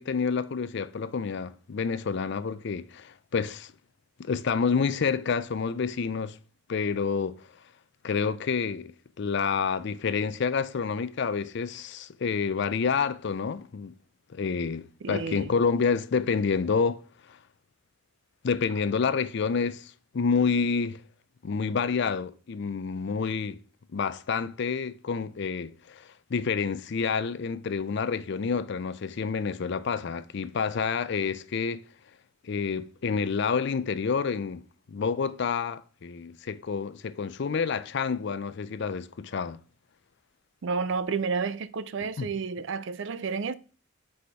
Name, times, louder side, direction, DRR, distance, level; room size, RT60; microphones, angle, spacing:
voice 1, 0.0-3.7 4.2-6.4 6.7-7.5 8.0-13.9 14.3-17.4 18.4-21.0 21.4-23.6 23.9-31.8 32.4-39.6 42.0-42.3, left 5 dB, 55° left, 0.4 m, -28 dB
voice 2, 15.0-15.6 40.6-43.5, right 5 dB, 60° right, 0.4 m, -31 dB
4.9 x 4.2 x 5.6 m
head